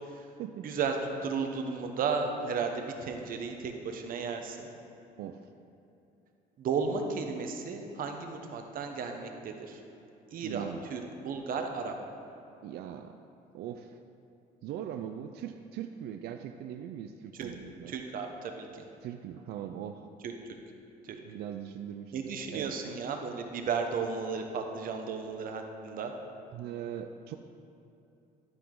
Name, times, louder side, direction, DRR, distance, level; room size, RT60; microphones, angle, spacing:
voice 1, 0.6-0.9 1.2-4.7 6.6-9.8 10.3-11.9 17.4-17.5 17.9-18.8 20.2-20.3 21.0-21.2 22.1-26.1, right 5 dB, 55° right, 4 dB, 1.0 m, -34 dB
voice 2, 5.2-5.5 10.4-10.9 12.6-13.2 13.5-14.0 14.6-17.9 19.0-20.1 21.2-22.7 26.5-27.4, right 9 dB, 70° right, 7 dB, 0.4 m, -40 dB
12.5 x 4.8 x 3.8 m, 2.7 s
cardioid pair, 110°, 17 cm